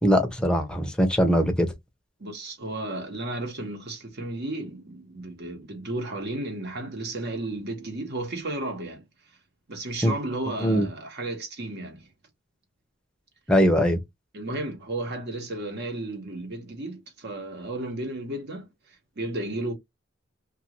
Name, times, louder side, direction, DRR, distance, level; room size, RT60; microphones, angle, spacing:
voice 1, 0.0-1.7 10.0-10.1 10.6-10.9 13.5-14.0, equal, 5° left, 0.7 m, -21 dB
voice 2, 2.2-9.0 9.7-12.1 14.3-18.7 19.2-19.7, right 2 dB, 55° right, 1.2 m, -33 dB
2.6 x 2.5 x 2.9 m
head